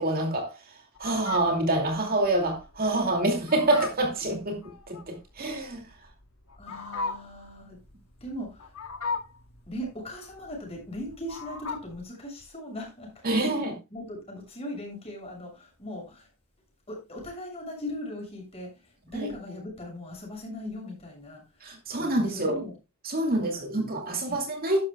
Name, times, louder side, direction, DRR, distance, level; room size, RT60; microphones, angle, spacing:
voice 1, 0.0-4.6 4.9-5.9 6.7-6.8 13.2-13.7 19.1-19.3 21.6-22.6 23.0-24.9, right 2 dB, 40° right, 2.4 m, -27 dB
Fowl, 1.0-12.0, left 4 dB, 80° left, 1.8 m, -38 dB
voice 2, 6.6-7.8 8.2-8.7 9.7-13.4 13.9-16.3 16.9-21.7 22.0-22.7 23.3-23.8 24.3-24.4, left 1 dB, 25° left, 6.7 m, -39 dB
12.0 x 11.5 x 2.3 m
head